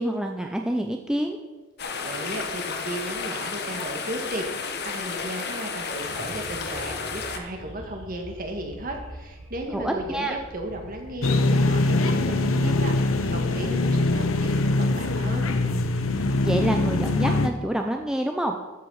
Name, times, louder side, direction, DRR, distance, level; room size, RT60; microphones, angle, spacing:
voice 1, 0.0-1.4 9.7-10.4 16.2-18.6, right 1 dB, 5° right, 3 dB, 0.5 m, -27 dB
sound 1, 1.8-7.4, left 5 dB, 55° left, 1.1 m, -32 dB
voice 2, 2.0-15.5, right 1 dB, 45° right, 3 dB, 1.8 m, -35 dB
sound 2, 6.0-16.7, right 1 dB, 85° right, 2.2 m, -45 dB
sound 3, 11.2-17.5, left 2 dB, 80° left, 0.8 m, -23 dB
14.0 x 6.1 x 5.6 m, 1.2 s
head